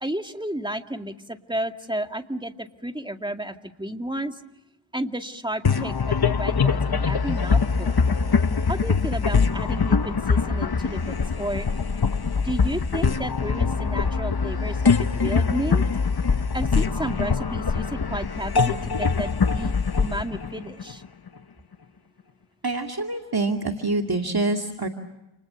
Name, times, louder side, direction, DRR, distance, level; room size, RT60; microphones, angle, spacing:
voice 1, 0.0-4.4 4.9-8.0 8.7-11.7 12.4-15.8 16.5-21.0, right 1 dB, 10° right, 6 dB, 2.1 m, -32 dB
sound 1, 5.6-21.3, left 5 dB, 55° left, 1.2 m, -23 dB
voice 2, 22.6-24.9, right 2 dB, 50° right, 3 dB, 2.4 m, -26 dB
29.5 x 29.0 x 6.9 m, 0.94 s
wide cardioid pair, 50°, 46 cm